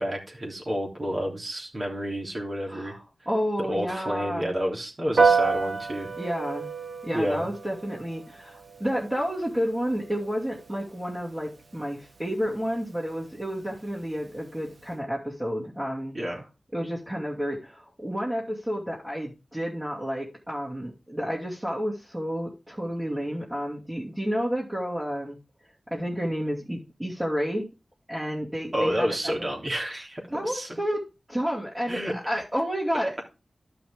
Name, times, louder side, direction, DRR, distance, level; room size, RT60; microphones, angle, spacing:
voice 1, 0.0-2.9 3.6-6.1 7.1-7.5 16.1-16.5 28.7-30.7 31.9-32.1, equal, 45° right, 0 dB, 3.3 m, -30 dB
voice 2, 2.7-3.0 3.3-4.5 6.2-6.7 7.0-16.2 16.7-25.4 25.9-27.7 28.1-29.5 30.3-31.0 31.3-33.2, equal, 15° right, -6 dB, 2.6 m, -30 dB
Piano, 5.2-14.9, right 4 dB, 70° right, 1.4 m, -31 dB
11.5 x 5.9 x 3.7 m, 0.29 s
cardioid pair, 50°, 0 cm